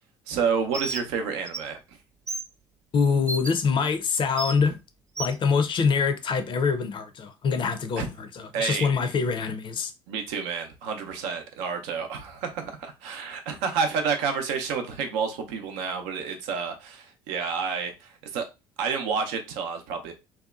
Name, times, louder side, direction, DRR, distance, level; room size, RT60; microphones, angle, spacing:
voice 1, 0.3-2.0 8.0-8.1 8.5-8.9 10.1-18.5 18.8-20.1, right 6 dB, 70° right, 0.6 m, -29 dB
Bird, 0.7-1.0 1.5-1.6 2.3-2.4 3.3-3.5 4.4-4.5 5.2-5.3, right 3 dB, 25° right, 0.4 m, -31 dB
voice 2, 2.9-4.8 5.2-9.9, left 5 dB, 40° left, 0.5 m, -25 dB
2.7 x 2.2 x 2.3 m
hypercardioid pair, 55°, 12 cm